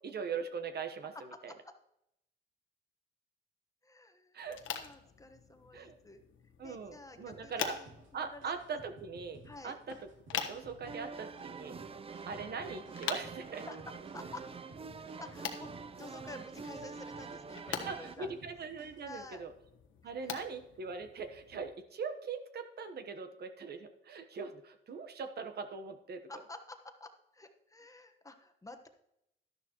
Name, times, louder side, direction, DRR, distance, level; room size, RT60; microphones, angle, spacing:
voice 1, 0.0-1.5 4.3-4.6 5.7-6.0 6.6-7.8 8.1-11.8 12.3-13.6 17.8-19.5 20.0-26.2, right 5 dB, 55° right, 8 dB, 1.1 m, -41 dB
voice 2, 3.8-6.2 6.6-8.4 9.4-9.7 13.6-14.5 14.9-18.3 19.0-19.4 26.3-28.9, left 2 dB, 15° left, 6 dB, 1.2 m, -50 dB
sound 1, 4.4-21.7, left 8 dB, 75° left, 1.3 m, -46 dB
sound 2, 7.3-19.1, right 2 dB, 85° right, 2.3 m, -57 dB
sound 3, 10.9-18.2, right 5 dB, 30° right, 0.6 m, -46 dB
12.0 x 11.0 x 3.0 m, 0.79 s
cardioid pair, 90°, 20 cm